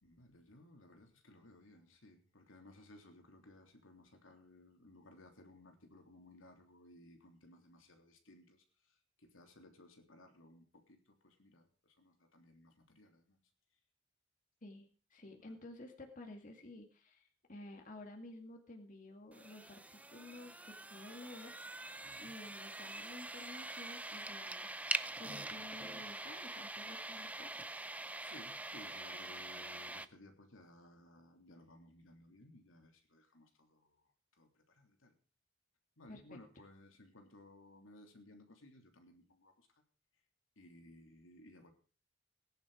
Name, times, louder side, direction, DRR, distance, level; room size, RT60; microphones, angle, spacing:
voice 1, 0.0-13.4 15.2-15.6 21.9-22.3 25.2-26.1 28.2-34.0 34.4-35.1 36.0-39.7 40.6-41.7, left 1 dB, 90° left, 4 dB, 3.3 m, -60 dB
voice 2, 14.6-21.5 22.2-24.7 25.2-27.6 36.1-36.4, left 2 dB, 40° left, 2 dB, 2.2 m, -52 dB
sound 1, 19.3-30.1, right 2 dB, 5° right, 0.6 m, -44 dB
18.0 x 10.5 x 5.0 m, 0.39 s
head